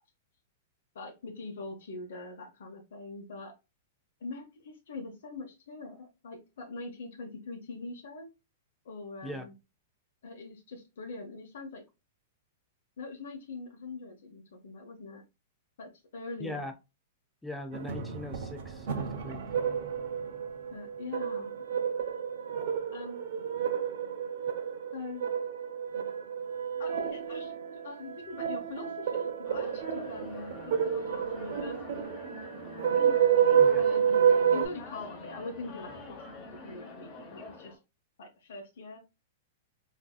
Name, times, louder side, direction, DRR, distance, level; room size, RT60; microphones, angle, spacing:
voice 1, 0.9-3.5 4.2-8.3 8.8-9.5 10.2-11.8 13.0-15.2 15.8-16.7 20.7-21.6 22.9-23.2 24.9-25.2 26.8-30.8 31.1-32.1 32.9-33.2 33.7-34.2 34.5-37.8 38.2-39.0, left 3 dB, 75° left, 0.8 m, -43 dB
voice 2, 16.4-16.7 17.4-19.4 33.6-33.8, left 1 dB, 5° left, 0.4 m, -40 dB
sound 1, 17.7-34.7, right 8 dB, 60° right, 0.7 m, -29 dB
sound 2, 29.4-37.8, left 3 dB, 25° left, 0.8 m, -46 dB
3.5 x 2.6 x 2.3 m
supercardioid pair, 155°, 0 cm